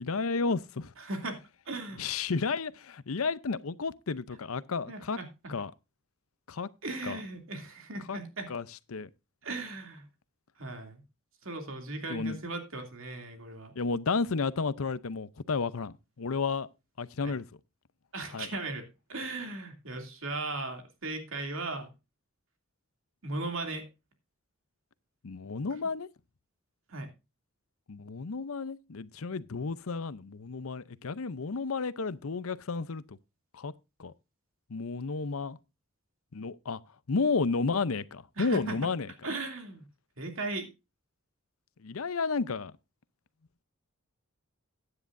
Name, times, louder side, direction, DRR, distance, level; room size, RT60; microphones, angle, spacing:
voice 1, 0.0-0.9 2.0-5.2 5.5-5.7 6.5-6.7 7.0-7.2 8.1-8.2 8.5-8.6 8.9-9.1 12.1-12.4 13.8-16.7 17.0-17.5 18.3-18.5 25.2-26.1 27.9-33.2 33.5-33.7 34.0-34.1 34.7-35.6 36.3-36.8 37.1-39.1 41.8-42.7, left 4 dB, 80° left, 0.7 m, -32 dB
voice 2, 1.0-2.1 4.9-5.3 6.8-8.5 9.4-10.0 10.6-11.0 11.4-13.7 17.2-17.4 18.1-21.9 23.2-23.9 26.9-27.1 38.4-38.7 39.2-39.8 40.2-40.7, right 2 dB, 65° right, 2.7 m, -37 dB
15.5 x 9.9 x 2.6 m
head